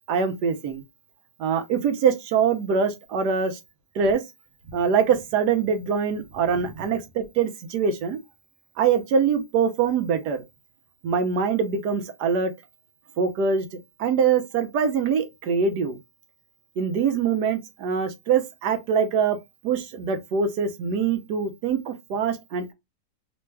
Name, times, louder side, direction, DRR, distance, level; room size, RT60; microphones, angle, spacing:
voice 1, 0.1-0.8 1.4-3.6 3.9-4.2 4.7-8.2 8.8-10.4 11.0-12.5 13.2-16.0 16.8-19.4 19.6-22.7, right 6 dB, 80° right, 1.2 m, -24 dB
3.3 x 2.2 x 3.2 m
omnidirectional pair, 1.8 m